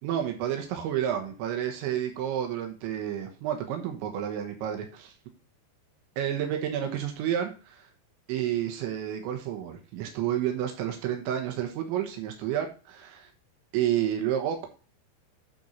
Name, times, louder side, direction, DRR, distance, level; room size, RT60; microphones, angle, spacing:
voice 1, 0.0-5.1 6.2-7.9 8.3-13.3 13.7-14.7, right 10 dB, 90° right, 4 dB, 3.5 m, -30 dB
9.3 x 4.5 x 5.3 m, 0.35 s
omnidirectional pair, 5.2 m